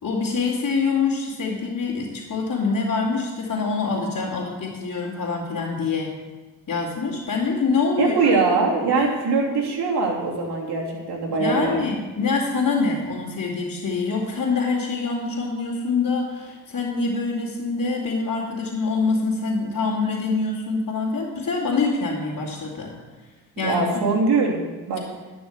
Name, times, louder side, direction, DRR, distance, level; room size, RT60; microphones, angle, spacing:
voice 1, 0.0-6.1 6.7-8.1 8.9-9.1 11.3-22.9 23.6-23.8, left 4 dB, 45° left, -7 dB, 2.9 m, -25 dB
voice 2, 8.0-11.8 23.6-24.6 24.9-25.0, right 4 dB, 65° right, -1 dB, 3.0 m, -22 dB
11.5 x 6.2 x 8.1 m, 1.3 s
supercardioid pair, 50°, 42 cm